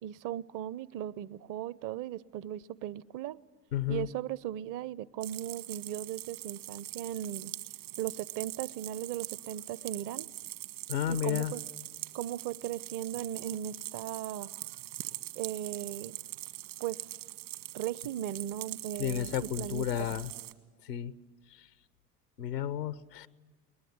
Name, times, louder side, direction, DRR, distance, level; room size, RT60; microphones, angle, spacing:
voice 1, 0.0-3.4 3.9-7.5 8.0-10.3 11.1-11.6 12.1-14.5 15.4-16.2 16.8-17.0 17.7-20.1, right 12 dB, 40° right, 21 dB, 0.7 m, -37 dB
voice 2, 3.7-4.1 10.9-11.5 19.0-20.3 20.8-21.1 21.5-21.7 22.4-23.3, left 10 dB, 90° left, 16 dB, 0.8 m, -32 dB
sound 1, 5.2-20.5, right 16 dB, 65° right, 1.7 m, -43 dB
21.5 x 20.0 x 9.4 m, 1.3 s
hypercardioid pair, 70°, 47 cm